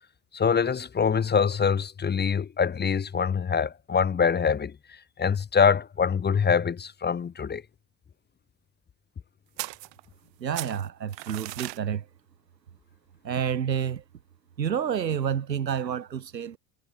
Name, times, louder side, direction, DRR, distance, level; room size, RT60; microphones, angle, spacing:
voice 1, 0.3-4.7 5.2-7.6, left 6 dB, 20° left, 1.0 m, -24 dB
sound 1, 9.6-10.3 10.5-11.8, right 22 dB, 55° right, 5.7 m, -37 dB
voice 2, 10.4-12.0 13.2-14.0 14.6-16.6, right 8 dB, 90° right, 1.8 m, -29 dB
hypercardioid pair, 70°, 49 cm